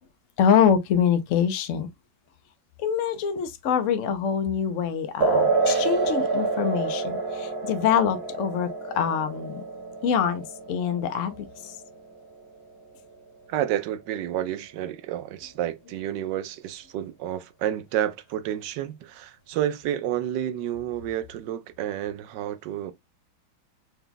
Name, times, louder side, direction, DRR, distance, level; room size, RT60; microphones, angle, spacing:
voice 1, 0.4-1.9 2.8-9.6 10.0-11.8, left 8 dB, 75° left, 0.7 m, -25 dB
sound 1, 5.2-12.2, right 3 dB, 40° right, 1.2 m, -27 dB
voice 2, 13.5-22.9, right 11 dB, 70° right, 1.1 m, -30 dB
4.3 x 2.3 x 3.8 m
omnidirectional pair, 2.2 m